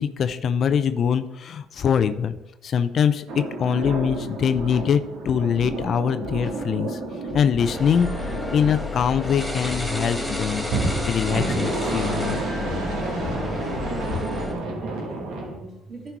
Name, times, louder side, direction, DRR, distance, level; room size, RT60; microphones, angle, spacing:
voice 1, 0.0-2.3 2.6-7.0 7.3-8.1 8.5-10.7 11.1-12.4, left 7 dB, 55° left, 12 dB, 0.6 m, -23 dB
sound 1, 3.3-9.6 10.6-15.6, right 2 dB, 75° right, 1.9 m, -30 dB
Scratching (performance technique), 3.8-4.2 4.5-4.8 5.5-5.8 6.2-6.5 7.3-7.6 8.0-8.3 9.0-9.3 9.7-10.0, left 3 dB, 35° left, 1.2 m, -39 dB
sound 2, 7.6-14.5, left 1 dB, ahead, 2.5 m, -30 dB
voice 2, 14.1-16.1, right 2 dB, 50° right, -1 dB, 2.9 m, -41 dB
11.0 x 4.5 x 4.7 m, 0.88 s
supercardioid pair, 70°, 0 cm